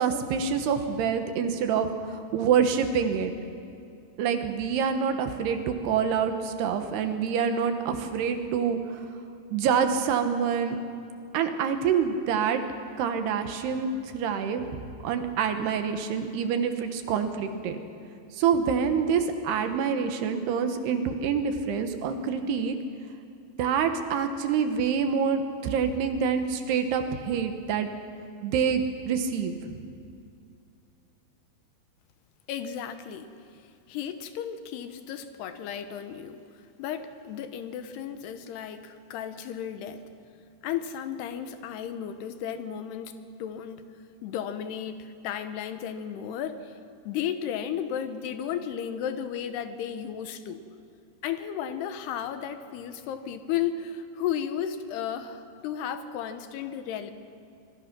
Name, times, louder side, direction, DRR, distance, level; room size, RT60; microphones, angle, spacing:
voice 1, 0.0-1.9 2.3-3.3 4.2-9.0 9.5-10.8 11.3-12.6 13.0-14.8 15.0-17.8 18.4-22.8 23.6-27.9 28.4-29.8, right 7 dB, 75° right, 7 dB, 3.1 m, -26 dB
voice 2, 32.5-33.6 33.9-36.4 36.8-40.0 40.6-43.9 44.2-46.8 47.0-50.6 51.2-57.1, left 9 dB, 75° left, 9 dB, 2.9 m, -34 dB
25.5 x 22.0 x 6.0 m, 2.5 s
omnidirectional pair, 5.0 m